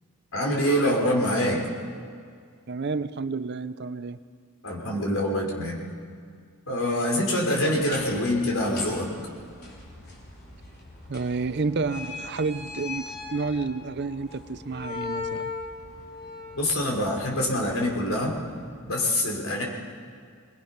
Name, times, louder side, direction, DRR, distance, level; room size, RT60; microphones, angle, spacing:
voice 1, 0.3-1.6 4.6-5.8 6.7-9.1 16.5-18.3 18.8-19.6, left 1 dB, 65° left, -1 dB, 4.3 m, -25 dB
voice 2, 2.7-4.2 11.1-15.5, right 4 dB, 50° right, 14 dB, 0.6 m, -30 dB
sound 1, 7.8-18.7, left 4 dB, 45° left, 4.1 m, -40 dB
24.5 x 20.5 x 5.8 m, 2.1 s
head